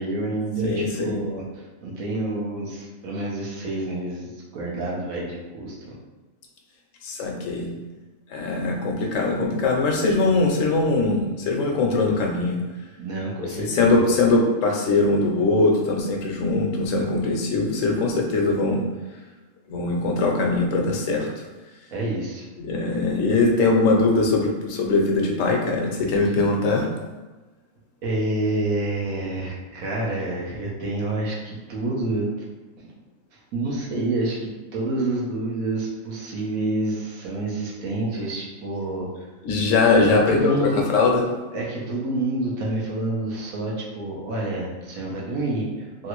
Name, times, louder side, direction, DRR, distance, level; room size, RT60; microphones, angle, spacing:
voice 1, 0.0-5.9 13.0-14.0 21.9-22.4 28.0-32.3 32.8-32.9 33.5-39.3 40.1-40.8 41.5-46.1, right 2 dB, 85° right, -4 dB, 1.2 m, -28 dB
voice 2, 0.6-1.2 7.0-7.7 8.3-12.6 13.6-18.8 19.7-21.3 22.6-26.9 39.4-41.2, left 3 dB, 70° left, 1 dB, 0.9 m, -21 dB
3.1 x 2.4 x 3.0 m, 1.2 s
omnidirectional pair, 1.4 m